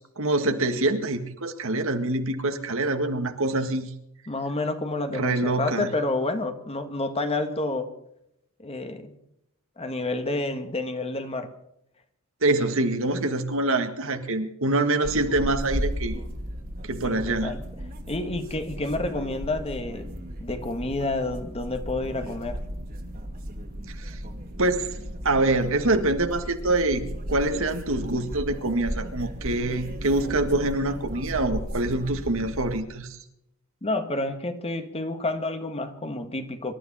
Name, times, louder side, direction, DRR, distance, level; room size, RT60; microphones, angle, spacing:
voice 1, 0.2-3.9 5.1-5.9 12.4-16.2 16.8-17.6 24.0-24.2 24.6-24.9 25.2-33.2, right 2 dB, 65° right, 7 dB, 1.8 m, -25 dB
voice 2, 4.3-7.9 8.6-9.1 9.8-11.5 17.0-17.6 18.1-20.1 20.4-22.6 33.8-36.7, left 2 dB, 30° left, 7 dB, 1.6 m, -29 dB
sound 1, 15.0-32.8, equal, 45° right, 2.5 m, -35 dB
25.5 x 12.5 x 4.3 m, 0.78 s
head